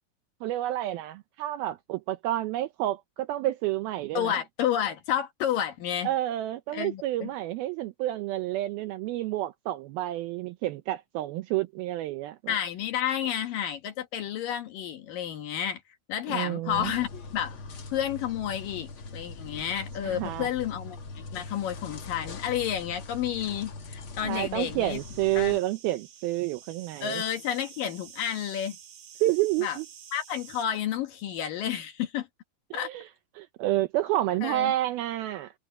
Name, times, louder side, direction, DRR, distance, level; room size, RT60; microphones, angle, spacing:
voice 1, 0.4-4.4 6.0-12.6 16.3-16.9 20.0-20.5 24.2-27.2 29.2-29.9 32.7-33.1 33.4-35.5, right 15 dB, 80° right, 2.2 m, -29 dB
voice 2, 4.1-6.1 6.7-7.3 12.5-15.8 16.1-17.6 17.9-25.0 25.4-25.6 27.0-28.8 29.6-29.8 30.1-32.3 32.7-32.9 34.4-34.7, left 10 dB, 65° left, 2.6 m, -31 dB
sound 1, 16.7-25.6, left 3 dB, 45° left, 1.7 m, -42 dB
sound 2, 24.9-30.7, right 8 dB, 55° right, 3.3 m, -49 dB
omnidirectional pair, 5.0 m